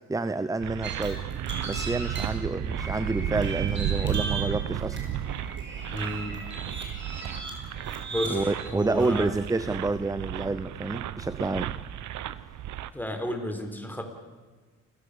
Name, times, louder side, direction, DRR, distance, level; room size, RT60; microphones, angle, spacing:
voice 1, 0.1-1.2 1.7-5.0 8.3-11.7, right 3 dB, 10° right, 13 dB, 0.7 m, -29 dB
sound 1, 0.6-12.9, right 11 dB, 75° right, 1.0 m, -33 dB
sound 2, 0.8-9.7, right 3 dB, 40° right, 5.7 m, -38 dB
voice 2, 5.9-6.5 8.1-9.3 12.3-12.4 12.9-14.0, equal, 5° left, 5 dB, 4.1 m, -32 dB
29.0 x 16.0 x 6.9 m, 1.4 s
cardioid pair, 90°, 30 cm